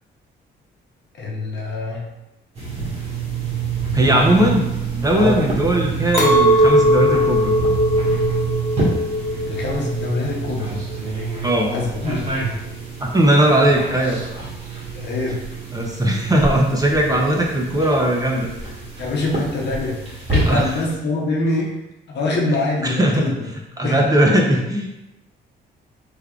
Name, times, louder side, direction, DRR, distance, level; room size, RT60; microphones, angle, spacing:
voice 1, 1.2-2.0 4.0-4.5 5.2-5.5 9.5-10.7 11.7-12.3 14.9-15.4 19.0-20.0 20.3-21.8 22.1-23.5 23.8-24.0, left 3 dB, 60° left, -1 dB, 0.9 m, -24 dB
sound 1, 2.5-20.9, right 4 dB, 35° right, 1.2 m, -27 dB
voice 2, 3.9-7.5 11.4-11.7 13.0-14.2 15.7-18.7 20.5-20.7 22.8-23.4 23.8-24.9, right 1 dB, 20° right, -1 dB, 0.6 m, -18 dB
Chink clink, 6.1-11.5, equal, 20° left, 1.4 m, -19 dB
3.5 x 3.5 x 2.3 m, 0.94 s
cardioid pair, 90°, 20 cm